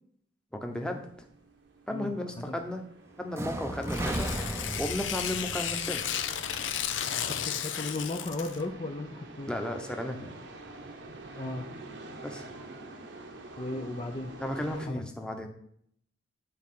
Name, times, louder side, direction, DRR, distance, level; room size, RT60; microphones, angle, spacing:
voice 1, 0.5-1.1 1.9-2.8 3.2-4.3 4.8-6.0 9.5-10.3 12.2-12.4 14.4-15.5, left 1 dB, 5° left, 3 dB, 0.9 m, -34 dB
sound 1, 0.7-14.9, right 2 dB, 70° right, 1.0 m, -48 dB
voice 2, 1.9-2.6 7.2-9.5 11.3-11.7 13.6-14.3 14.6-15.0, left 2 dB, 30° left, 4 dB, 0.6 m, -36 dB
sound 2, 3.3-7.3, right 1 dB, 15° right, 0.6 m, -36 dB
Tearing, 3.8-8.6, left 9 dB, 90° left, 0.7 m, -33 dB
9.7 x 4.3 x 5.7 m, 0.67 s
head